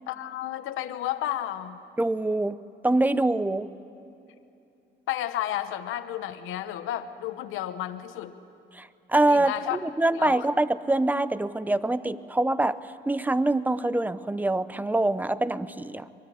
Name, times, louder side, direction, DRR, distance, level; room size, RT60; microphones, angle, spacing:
voice 1, 0.1-1.8 5.1-8.4 9.3-9.8 10.1-10.5, left 12 dB, 90° left, 9 dB, 1.0 m, -32 dB
voice 2, 2.0-3.7 8.7-12.8 13.1-16.1, right 2 dB, 10° right, 15 dB, 0.8 m, -25 dB
24.0 x 23.0 x 9.9 m, 2.8 s
cardioid pair, 90°, 20 cm